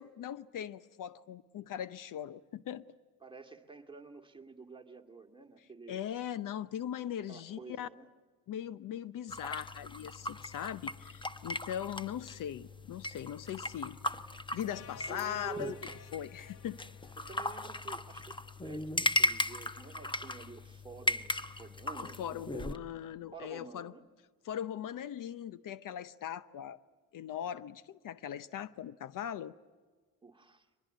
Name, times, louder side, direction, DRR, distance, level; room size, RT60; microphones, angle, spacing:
voice 1, 0.0-2.8 5.9-7.9 8.5-14.0 14.5-15.7 16.1-16.8 22.0-23.9 24.4-26.8 27.1-29.5, left 10 dB, 60° left, 15 dB, 0.8 m, -40 dB
voice 2, 3.2-6.0 7.3-8.1 15.1-15.8 17.2-18.3 18.6-22.8 23.3-24.0 30.2-30.7, right 5 dB, 15° right, 4 dB, 2.2 m, -49 dB
sound 1, 9.3-22.8, left 1 dB, 15° left, 0.9 m, -37 dB
sound 2, 14.7-18.0, left 5 dB, 80° left, 1.8 m, -55 dB
24.0 x 20.5 x 9.3 m, 1.4 s
cardioid pair, 100°, 36 cm